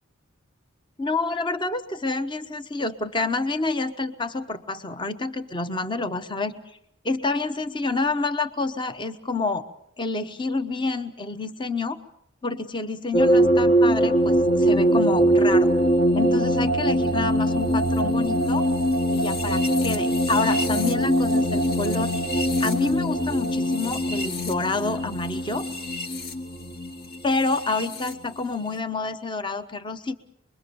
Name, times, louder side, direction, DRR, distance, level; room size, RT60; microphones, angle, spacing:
voice 1, 1.0-6.5 7.0-9.7 10.0-12.0 12.4-15.7 16.1-18.7 19.1-22.1 22.6-25.7 27.2-30.2, left 3 dB, 25° left, 10 dB, 1.0 m, -28 dB
sound 1, 13.1-28.1, equal, 50° left, 1.7 m, -22 dB
26.0 x 22.0 x 7.0 m, 0.71 s
head